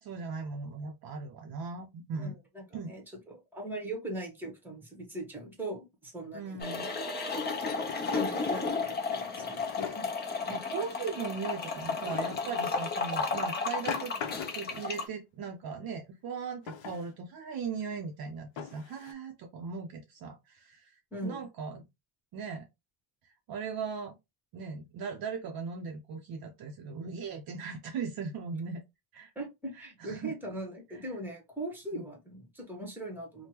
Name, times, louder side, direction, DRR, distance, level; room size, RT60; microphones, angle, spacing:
voice 1, 0.0-2.3 2.7-2.9 6.3-6.9 10.5-21.8 22.3-22.7 23.5-24.2 24.5-28.8 29.1-29.3 29.8-30.3 31.9-32.0, right 5 dB, 50° right, 0.5 m, -38 dB
voice 2, 2.2-6.6 7.3-7.6 8.1-10.1 10.4-10.7 21.1-21.5 29.3-33.5, right 1 dB, 5° right, 0.9 m, -40 dB
Drawer open or close, 6.5-6.6 7.8-8.7 9.4-10.2 12.0-12.5 13.3-14.8 16.6-17.1 17.8-17.9 18.6-19.1, left 8 dB, 65° left, 0.7 m, -41 dB
sound 1, 6.6-15.0, left 4 dB, 20° left, 0.5 m, -33 dB
3.4 x 2.1 x 2.9 m
cardioid pair, 160°, 49 cm